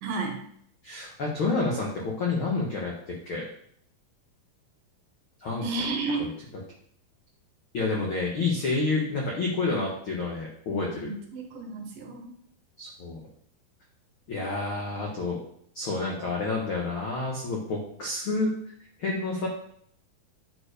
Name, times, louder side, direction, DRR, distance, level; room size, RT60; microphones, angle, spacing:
voice 1, 0.0-0.4 5.6-6.2 10.9-12.3, right 3 dB, 70° right, 3 dB, 2.6 m, -32 dB
voice 2, 0.8-2.9 3.3-3.4 5.4-5.6 6.2-6.3 7.7-11.1 12.8-13.2 14.3-15.4 15.7-18.5 19.0-19.5, left 3 dB, 85° left, -2 dB, 1.1 m, -29 dB
9.7 x 4.5 x 5.0 m, 0.65 s
omnidirectional pair, 4.4 m